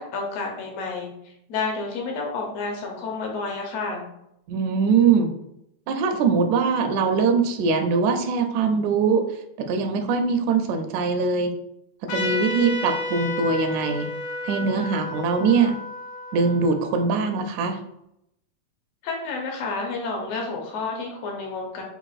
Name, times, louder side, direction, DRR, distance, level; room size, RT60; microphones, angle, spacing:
voice 1, 0.0-4.0 19.0-21.8, left 3 dB, 70° left, 0 dB, 1.7 m, -30 dB
voice 2, 4.5-5.3 5.9-11.5 12.0-14.1 14.4-15.8 16.3-17.8, right 5 dB, 85° right, 5 dB, 1.9 m, -22 dB
Trumpet, 12.1-17.2, left 2 dB, 90° left, 2.2 m, -31 dB
5.7 x 2.5 x 2.3 m, 0.79 s
omnidirectional pair, 3.3 m